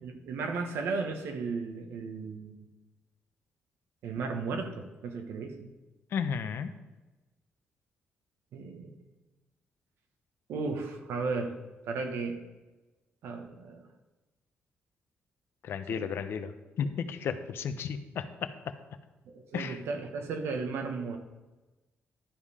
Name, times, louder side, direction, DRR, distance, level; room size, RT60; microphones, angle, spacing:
voice 1, 0.0-2.6 4.0-5.7 8.5-9.0 10.5-11.6 11.8-12.4 13.2-13.9 15.9-16.0 19.3-21.2, right 4 dB, 85° right, 5 dB, 1.2 m, -35 dB
voice 2, 6.1-6.7 15.6-18.7 19.5-19.8, left 6 dB, 70° left, 9 dB, 0.7 m, -34 dB
12.0 x 5.5 x 4.9 m, 1.2 s
cardioid pair, 90°, 4 cm